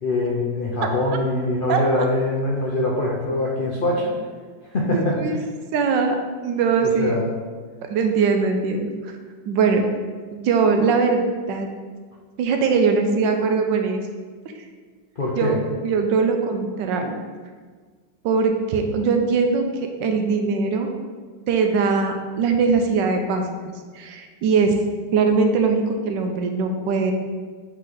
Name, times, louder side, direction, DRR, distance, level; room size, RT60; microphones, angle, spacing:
voice 1, 0.0-4.1 4.7-5.2 6.8-7.3 15.2-15.6, left 2 dB, 85° left, -3 dB, 0.4 m, -23 dB
voice 2, 4.9-5.4 5.7-6.2 6.4-7.2 7.9-9.1 9.5-9.8 10.3-11.7 12.4-14.0 15.4-17.2 18.2-19.6 20.0-20.9 21.5-23.5 23.9-24.8 25.1-27.1, right 5 dB, 80° right, 4 dB, 1.3 m, -21 dB
7.5 x 3.2 x 3.9 m, 1.5 s
omnidirectional pair, 2.0 m